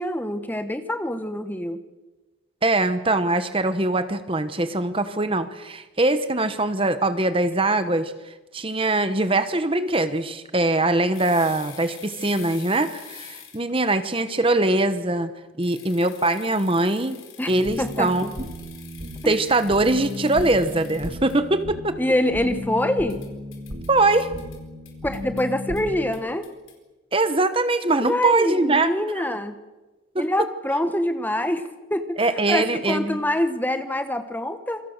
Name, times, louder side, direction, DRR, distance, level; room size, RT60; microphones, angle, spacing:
voice 1, 0.0-1.8 17.4-17.5 17.8-18.1 19.2-19.4 22.0-23.2 25.0-26.5 28.0-29.6 30.2-34.8, left 1 dB, 10° left, 9 dB, 1.1 m, -25 dB
voice 2, 2.6-15.3 15.6-17.2 17.5-18.3 19.2-21.9 23.9-24.3 27.1-28.9 29.2-29.3 30.1-30.2 32.2-33.2, right 2 dB, 25° right, 11 dB, 1.1 m, -22 dB
sound 1, 11.1-13.7 15.6-21.4 23.1-23.9 24.2-24.6 24.9-25.4 25.8-25.9 26.1-26.7, left 9 dB, 75° left, 4.7 m, -46 dB
sound 2, 17.5-26.1, left 1 dB, 80° right, 4.3 m, -35 dB
27.5 x 23.0 x 6.6 m, 1.2 s
head